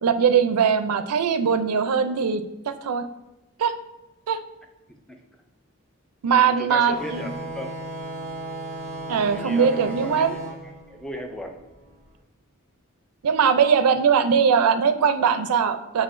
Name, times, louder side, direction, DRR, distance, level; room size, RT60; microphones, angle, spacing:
voice 1, 0.0-2.4 2.8-3.0 3.6-3.7 4.3-4.4 6.2-7.3 9.1-10.3 13.2-16.0, right 6 dB, 85° right, 10 dB, 0.4 m, -20 dB
voice 2, 4.9-5.2 6.4-7.8 9.3-11.6, equal, ahead, 3 dB, 0.3 m, -37 dB
sound 1, 6.9-12.1, right 2 dB, 30° right, 1.1 m, -35 dB
5.5 x 3.5 x 2.5 m, 1.0 s
head